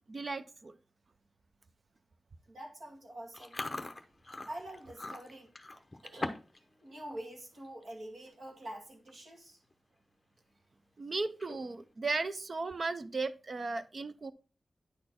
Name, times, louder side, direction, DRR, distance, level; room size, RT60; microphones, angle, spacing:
voice 1, 0.1-0.7 11.0-14.3, right 3 dB, 40° right, 0.4 m, -36 dB
voice 2, 2.5-3.6 4.5-5.5 6.0-6.4 6.8-9.6, right 1 dB, 60° right, 2.2 m, -46 dB
Chewing mastication, 3.3-6.6 6.9-7.2 7.6-7.9 8.6-8.7 8.9-9.3 9.7-9.8 11.2-11.8, left 2 dB, 20° left, 0.7 m, -41 dB
9.6 x 4.2 x 4.2 m
wide cardioid pair, 155°, 0 cm